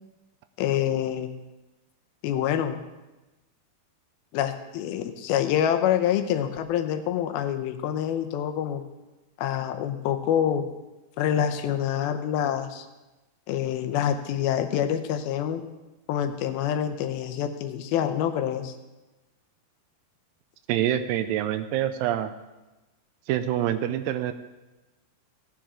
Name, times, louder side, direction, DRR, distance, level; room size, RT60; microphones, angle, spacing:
voice 1, 0.6-1.4 2.2-2.8 4.3-8.8 9.4-10.7 11.2-12.9 13.5-15.6 16.1-18.8, left 10 dB, 80° left, 8 dB, 2.7 m, -26 dB
voice 2, 20.7-22.3 23.3-24.3, right 11 dB, 80° right, 10 dB, 2.1 m, -26 dB
16.5 x 10.5 x 3.7 m, 1.1 s
omnidirectional pair, 4.3 m